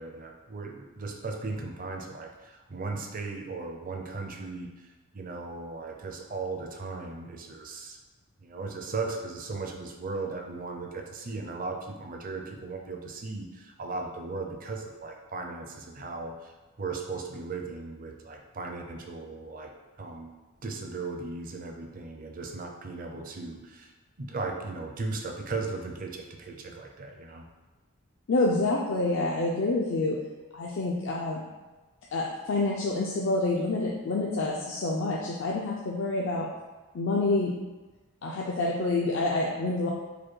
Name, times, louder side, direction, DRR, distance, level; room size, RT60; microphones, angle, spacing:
voice 1, 0.0-8.0 8.4-19.7 20.0-20.3 20.6-23.9 24.2-27.5, right 3 dB, 35° right, 3 dB, 0.5 m, -37 dB
voice 2, 28.3-30.2 30.5-31.4 32.1-36.5 36.9-37.5 38.2-39.9, left 2 dB, 55° left, -3 dB, 0.4 m, -27 dB
5.0 x 2.2 x 4.4 m, 1.2 s
head